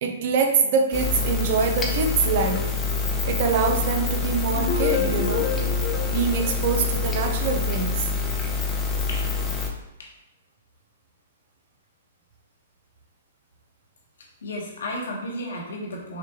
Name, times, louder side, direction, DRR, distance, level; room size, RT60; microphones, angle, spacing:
voice 1, 0.0-2.7 3.3-5.5 6.1-8.1, right 5 dB, 50° right, 4 dB, 0.6 m, -24 dB
sound 1, 0.9-9.7, left 4 dB, 10° left, 0.6 m, -26 dB
sound 2, 4.6-7.5, left 6 dB, 30° left, 1.1 m, -29 dB
voice 2, 14.4-16.2, left 1 dB, 70° left, -2 dB, 1.1 m, -33 dB
6.0 x 2.3 x 2.9 m, 0.92 s
figure-of-eight pair, 115°, 0 cm